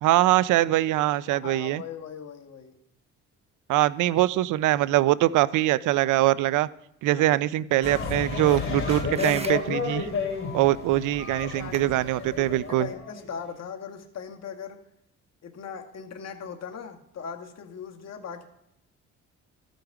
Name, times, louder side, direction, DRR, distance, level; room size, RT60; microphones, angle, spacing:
voice 1, 0.0-1.8 3.7-6.7 7.0-10.1 10.5-12.9, right 15 dB, 85° right, 18 dB, 0.5 m, -23 dB
voice 2, 1.2-2.8 7.1-7.3 11.3-14.8 15.4-18.4, left 7 dB, 60° left, 3 dB, 1.5 m, -39 dB
sound 1, 7.8-13.5, left 5 dB, 45° left, 2.5 m, -32 dB
sound 2, 7.8-12.9, right 3 dB, 20° right, 0.9 m, -44 dB
14.5 x 5.1 x 4.7 m, 0.80 s
cardioid pair, 90°, 30 cm